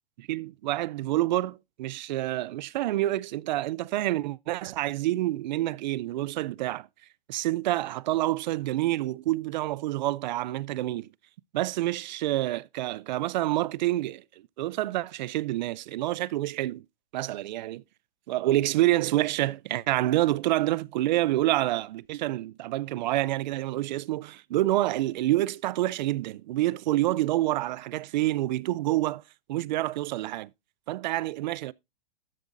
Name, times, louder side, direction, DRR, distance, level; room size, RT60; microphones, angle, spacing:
voice 1, 0.2-6.9 7.3-11.1 11.5-14.2 14.6-16.8 17.1-17.8 18.3-29.2 29.5-30.5 30.9-31.7, right 16 dB, 45° right, 0.4 m, -27 dB
12.5 x 7.6 x 2.5 m
hypercardioid pair, 140°, 31 cm